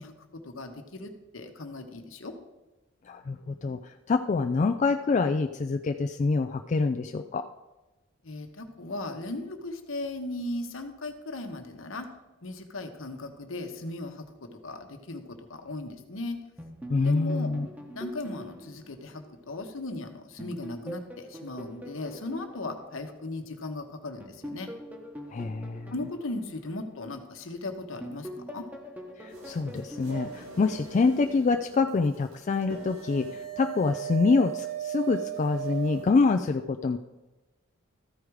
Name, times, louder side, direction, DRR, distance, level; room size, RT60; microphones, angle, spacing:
voice 1, 0.0-2.4 8.2-12.1 12.4-15.2 15.5-16.4 17.0-17.5 17.9-24.7 25.9-28.7, left 2 dB, 70° left, 6 dB, 1.1 m, -37 dB
voice 2, 3.1-7.4 16.9-17.7 25.3-25.9 29.2-37.0, left 4 dB, 35° left, 6 dB, 0.3 m, -26 dB
sound 1, 16.6-19.9 20.4-23.6 24.2-27.5 28.0-31.3, equal, 10° right, 0.9 m, -44 dB
sound 2, 29.3-36.1, right 10 dB, 85° right, 2.6 m, -38 dB
14.0 x 4.9 x 4.7 m, 1.1 s
head